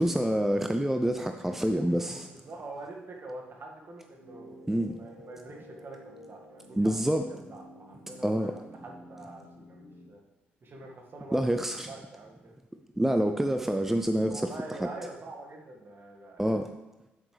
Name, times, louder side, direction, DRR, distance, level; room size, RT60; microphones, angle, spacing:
voice 1, 0.0-2.3 4.7-5.0 6.8-7.3 8.2-8.5 11.3-11.9 13.0-14.5 14.8-14.9 16.4-16.7, right 1 dB, 5° right, 6 dB, 0.5 m, -27 dB
voice 2, 1.8-4.5 5.0-7.0 7.3-10.2 10.6-11.4 11.9-12.6 14.3-16.6, right 2 dB, 40° right, 1 dB, 1.9 m, -45 dB
sound 1, 4.2-10.1, equal, 80° right, 1.7 m, -50 dB
9.6 x 8.7 x 3.3 m, 1.0 s
figure-of-eight pair, 45°, 6 cm